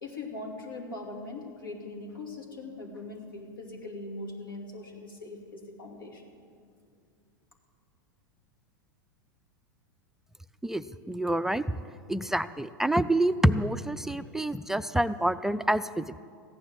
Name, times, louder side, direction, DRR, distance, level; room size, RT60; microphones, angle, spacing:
voice 1, 0.0-6.2, left 2 dB, 80° left, 1 dB, 2.4 m, -41 dB
voice 2, 10.6-11.6 12.1-16.2, right 1 dB, 5° right, 11 dB, 0.3 m, -27 dB
15.0 x 9.7 x 7.6 m, 2.3 s
hypercardioid pair, 95°, 11 cm